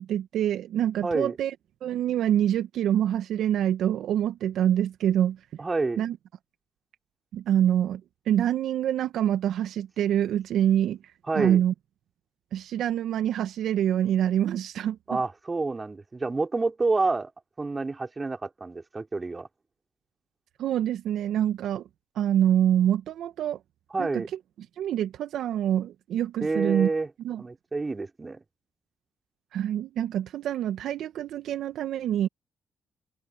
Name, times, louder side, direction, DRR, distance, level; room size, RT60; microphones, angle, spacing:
voice 1, 0.0-1.5 1.8-5.4 6.0-6.2 7.3-8.0 8.3-11.0 11.3-11.7 12.5-15.0 20.6-21.8 22.1-23.6 24.0-24.2 24.8-26.9 27.2-27.4 29.5-32.3, right 10 dB, 75° right, 1.5 m, -25 dB
voice 2, 1.0-1.4 5.6-6.0 11.3-11.6 15.1-17.3 17.6-19.5 23.9-24.3 26.4-27.1 27.4-28.4, right 3 dB, 30° right, 4.1 m, -28 dB
open air
hypercardioid pair, 45°, 0 cm